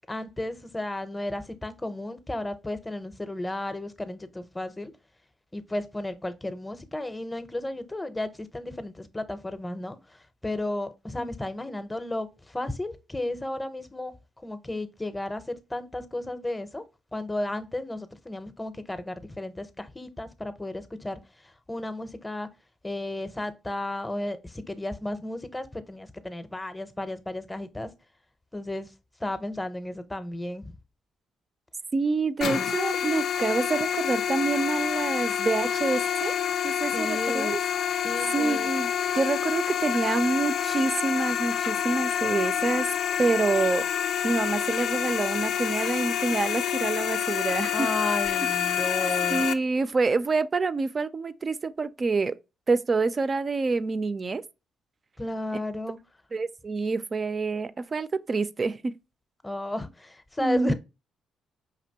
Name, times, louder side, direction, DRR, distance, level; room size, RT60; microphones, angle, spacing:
voice 1, 0.1-4.9 5.5-10.0 10.4-14.1 14.4-16.8 17.1-21.2 21.7-22.5 22.8-27.9 28.5-28.9 29.2-30.7 36.9-37.5 38.0-38.7 47.7-49.5 55.2-56.0 59.4-60.7, left 1 dB, 15° left, 0.6 m, -33 dB
voice 2, 31.9-36.4 36.6-37.6 38.3-38.9 39.1-42.9 43.2-47.9 49.3-52.4 52.7-54.4 56.3-58.9 60.4-60.7, right 3 dB, 35° right, 0.3 m, -27 dB
sound 1, 32.4-49.5, left 9 dB, 70° left, 0.3 m, -28 dB
5.0 x 2.9 x 2.8 m
cardioid pair, 90°, 0 cm